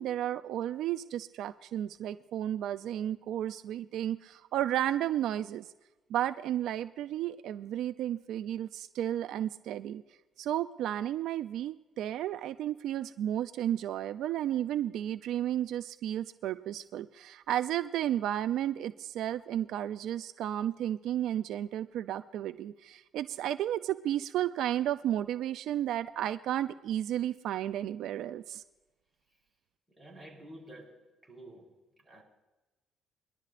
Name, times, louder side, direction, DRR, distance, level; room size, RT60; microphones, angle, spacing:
voice 1, 0.0-5.7 6.1-10.0 10.4-28.6, right 11 dB, 75° right, 0.4 m, -33 dB
voice 2, 29.9-32.2, right 1 dB, 10° right, 4.9 m, -51 dB
23.5 x 11.5 x 2.5 m
cardioid pair, 80°, 0 cm